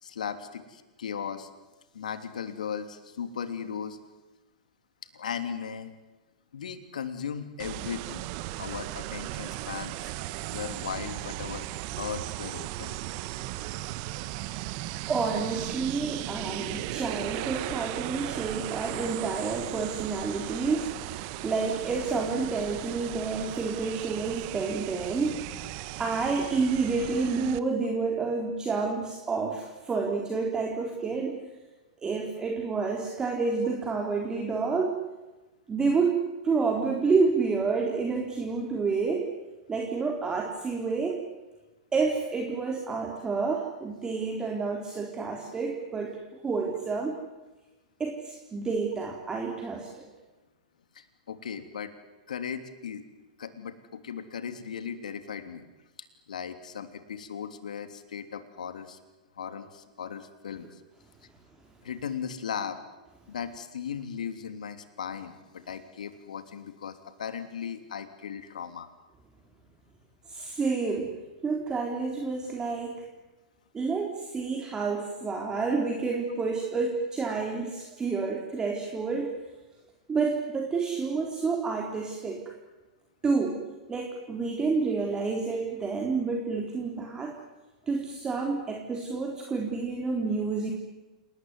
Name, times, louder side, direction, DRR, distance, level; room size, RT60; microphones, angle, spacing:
voice 1, 0.0-1.5 1.9-4.0 5.1-5.9 6.5-8.3 8.6-10.1 10.5-11.7 12.0-13.0 50.9-51.9 52.3-53.0 53.4-55.7 56.3-59.0 59.4-60.8 61.8-62.8 63.3-68.9, left 7 dB, 75° left, 9 dB, 3.1 m, -37 dB
sound 1, 7.6-27.6, right 16 dB, 45° right, 1.4 m, -37 dB
voice 2, 15.1-25.4 26.0-31.5 32.0-34.9 35.7-36.2 36.4-39.3 39.7-41.2 41.9-46.2 46.4-47.2 48.0-50.1 70.3-71.2 71.4-73.0 73.7-79.3 80.1-82.5 83.2-83.6 83.9-87.4 87.9-90.7, right 4 dB, 20° right, 1 dB, 3.8 m, -29 dB
28.5 x 19.5 x 9.6 m, 1.1 s
hypercardioid pair, 110°, 4 cm